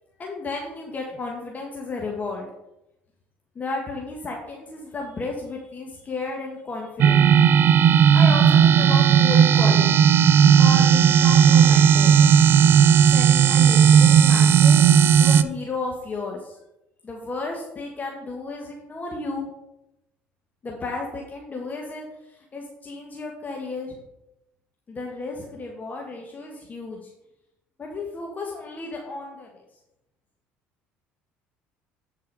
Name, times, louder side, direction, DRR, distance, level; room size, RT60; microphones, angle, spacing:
voice 1, 0.2-2.5 3.6-7.3 8.1-10.0 10.4-12.2 13.1-16.6 17.0-19.5 20.6-24.0 24.9-27.1 27.8-29.6, left 3 dB, 30° left, 0 dB, 1.6 m, -33 dB
sound 1, 7.0-15.4, right 8 dB, 50° right, 0.4 m, -15 dB
9.7 x 4.7 x 4.8 m, 0.87 s
hypercardioid pair, 70°, 5 cm